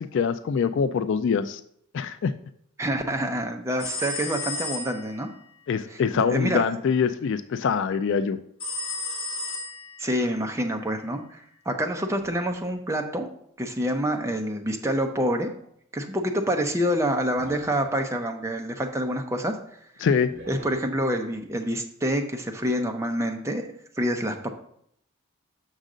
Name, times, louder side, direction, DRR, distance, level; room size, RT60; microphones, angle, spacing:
voice 1, 0.0-1.6 1.9-2.3 5.7-8.4 20.0-20.3, left 6 dB, 55° left, 12 dB, 0.3 m, -24 dB
voice 2, 2.8-5.3 5.9-6.6 10.0-13.3 13.6-15.5 15.9-19.6 20.5-23.7 24.0-24.5, equal, 15° right, 3 dB, 0.6 m, -27 dB
sound 1, 3.8-5.2 8.6-10.2, left 3 dB, 25° left, 2.3 m, -33 dB
sound 2, 12.2-13.1 15.5-15.7 17.4-18.1 20.3-20.9, right 1 dB, 50° right, 2.1 m, -46 dB
6.4 x 6.4 x 3.8 m, 0.68 s
head